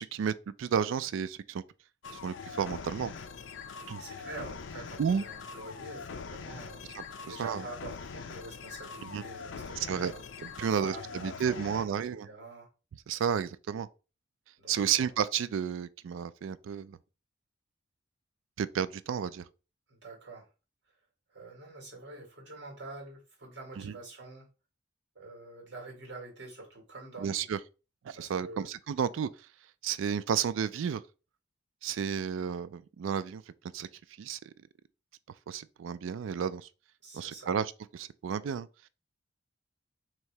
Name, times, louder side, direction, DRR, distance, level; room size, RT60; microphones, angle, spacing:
voice 1, 0.0-1.6 2.2-3.1 3.9-4.0 5.0-5.2 7.0-7.6 9.1-9.2 9.9-10.1 10.4-12.3 13.1-13.9 14.7-17.0 18.6-19.4 23.8-23.9 27.2-27.6 28.0-29.3 29.8-31.0 31.8-33.4 33.7-33.9 34.2-34.5 35.5-36.7 37.1-38.7, right 7 dB, 90° right, 0.3 m, -32 dB
sound 1, 2.0-11.8, left 5 dB, 80° left, 0.5 m, -43 dB
voice 2, 3.8-10.2 10.6-11.9 12.2-12.7 14.6-15.1 19.9-20.5 21.3-24.5 25.1-27.5 28.1-28.7 37.0-37.6, right 2 dB, 70° right, 1.7 m, -47 dB
3.0 x 2.7 x 4.5 m
head